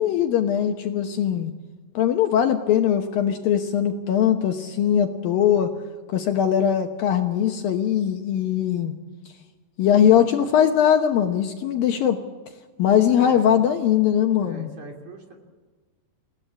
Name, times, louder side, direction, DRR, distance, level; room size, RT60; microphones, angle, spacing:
voice 1, 0.0-1.5 1.9-5.7 6.1-8.9 9.8-12.2 12.8-14.7, left 9 dB, 70° left, 5 dB, 2.5 m, -20 dB
voice 2, 9.9-10.2 13.1-13.6 14.4-15.4, right 2 dB, 45° right, 3 dB, 4.1 m, -42 dB
28.5 x 17.0 x 8.6 m, 1.4 s
omnidirectional pair, 5.0 m